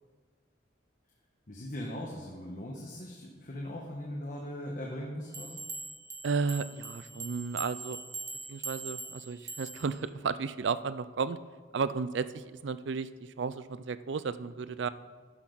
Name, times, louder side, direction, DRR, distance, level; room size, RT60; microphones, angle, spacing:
voice 1, 1.5-5.6, left 1 dB, 45° left, -1 dB, 1.3 m, -39 dB
sound 1, 5.3-10.0, right 3 dB, 15° right, 0.8 m, -42 dB
voice 2, 6.2-8.0 8.5-11.4 11.7-13.1 13.4-14.9, right 5 dB, 75° right, 14 dB, 0.4 m, -33 dB
12.0 x 10.5 x 4.0 m, 1.5 s
head